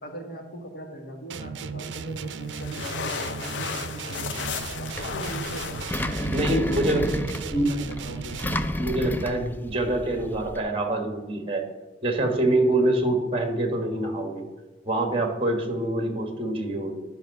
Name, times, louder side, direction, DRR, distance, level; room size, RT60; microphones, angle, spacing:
voice 1, 0.0-4.4 4.8-8.4, right 1 dB, 55° left, 2 dB, 1.7 m, -40 dB
sound 1, 1.3-8.8, right 5 dB, 80° right, 0.5 m, -36 dB
sound 2, 2.1-7.1, left 5 dB, 90° left, 0.8 m, -35 dB
Engine, 4.5-10.6, left 1 dB, 10° left, 0.4 m, -32 dB
voice 2, 6.3-7.1 7.5-7.7 8.8-11.6 12.0-14.4 14.8-17.0, right 1 dB, 30° right, 4 dB, 1.5 m, -25 dB
10.5 x 5.6 x 6.6 m, 1.2 s
head